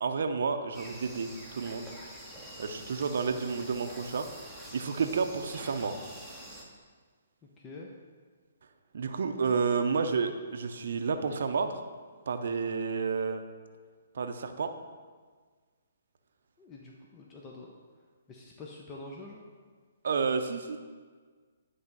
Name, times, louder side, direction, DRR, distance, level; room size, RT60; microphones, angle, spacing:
voice 1, 0.0-1.9 2.6-6.0 8.9-11.8 12.3-13.4 14.1-14.7 20.0-20.8, right 5 dB, 65° right, 7 dB, 0.6 m, -30 dB
sound 1, 0.7-6.6, right 1 dB, ahead, 1.1 m, -46 dB
voice 2, 7.6-7.9 16.6-17.7 18.3-19.5, left 2 dB, 20° left, -2 dB, 0.7 m, -46 dB
9.4 x 3.4 x 5.4 m, 1.5 s
hypercardioid pair, 140°, 0 cm